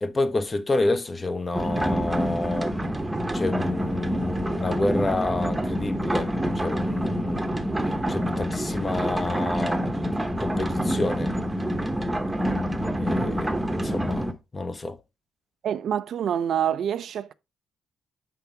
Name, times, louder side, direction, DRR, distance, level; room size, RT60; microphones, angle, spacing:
voice 1, 0.0-2.8 3.3-7.7 8.1-9.9 10.4-11.3 12.9-15.0, left 2 dB, 25° left, 0.9 m, -29 dB
sound 1, 1.5-14.3, equal, 10° right, 1.0 m, -27 dB
voice 2, 15.6-17.3, right 9 dB, 65° right, 0.5 m, -27 dB
7.9 x 5.9 x 3.4 m
cardioid pair, 90°, 0 cm